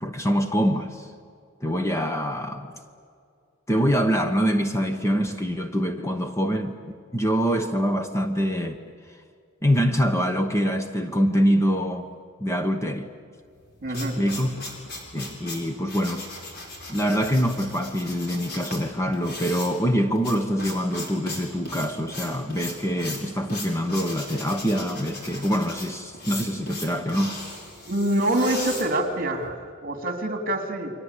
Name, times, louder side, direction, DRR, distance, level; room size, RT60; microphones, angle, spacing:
voice 1, 0.0-1.1 1.6-2.7 3.7-6.8 7.1-8.8 9.1-9.2 9.6-12.1 12.4-13.1 13.9-14.5 15.1-16.3 16.9-27.4, equal, 15° left, 6 dB, 1.1 m, -25 dB
sound 1, 13.5-29.5, left 2 dB, 50° left, 5.8 m, -37 dB
voice 2, 13.8-14.2 27.9-29.6 29.8-30.9, right 1 dB, 40° right, 5 dB, 3.1 m, -25 dB
29.5 x 23.5 x 8.4 m, 2.3 s
head